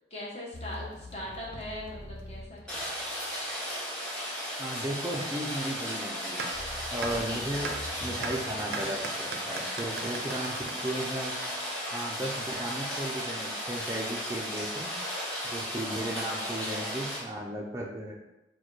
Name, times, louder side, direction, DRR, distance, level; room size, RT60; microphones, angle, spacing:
voice 1, 0.1-2.9, left 1 dB, 35° left, -5 dB, 1.1 m, -40 dB
sound 1, 0.5-3.5 6.5-10.0, left 1 dB, 90° left, 0.6 m, -45 dB
Rain, 2.7-17.2, equal, 5° left, 1.3 m, -35 dB
voice 2, 4.6-6.5 6.9-11.4 11.9-14.9 15.5-18.2, right 1 dB, 15° right, -1 dB, 0.4 m, -35 dB
sound 2, 6.4-6.5 7.0-7.1 7.6-7.7 8.2-8.3 8.7-11.7, right 4 dB, 70° right, 0.5 m, -37 dB
4.3 x 2.2 x 4.6 m, 0.98 s
head